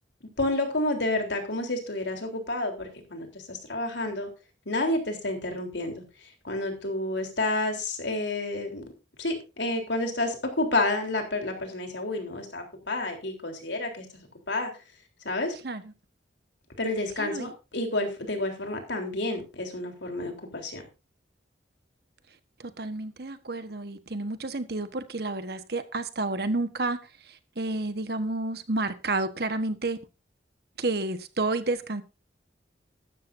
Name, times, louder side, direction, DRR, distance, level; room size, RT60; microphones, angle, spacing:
voice 1, 0.4-4.3 4.7-6.0 6.4-8.8 9.2-14.7 15.2-15.5 16.8-20.8, left 2 dB, 80° left, 3.6 m, -30 dB
voice 2, 17.2-17.5 22.6-27.0 27.3-30.0 30.8-32.0, right 2 dB, 60° right, 1.2 m, -30 dB
14.5 x 12.5 x 2.6 m
head